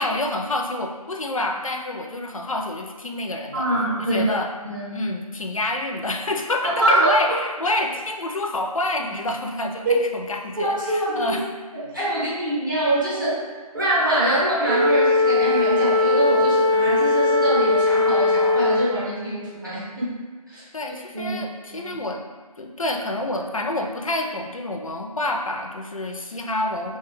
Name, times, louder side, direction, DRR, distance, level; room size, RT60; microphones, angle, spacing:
voice 1, 0.0-3.7 4.0-4.5 4.9-11.4 20.7-22.2 22.6-27.0, left 1 dB, 60° left, 3 dB, 0.4 m, -28 dB
voice 2, 3.5-4.2 4.6-5.0 6.8-7.1 9.8-10.0 10.6-11.3 11.7-13.4 13.7-20.1 20.5-20.6 21.1-21.4 21.7-21.9, right 1 dB, 30° right, -9 dB, 0.7 m, -24 dB
Wind instrument woodwind instrument, 14.7-19.0, left 3 dB, 85° right, 0.4 m, -19 dB
2.8 x 2.2 x 3.2 m, 1.4 s
figure-of-eight pair, 165°, 20 cm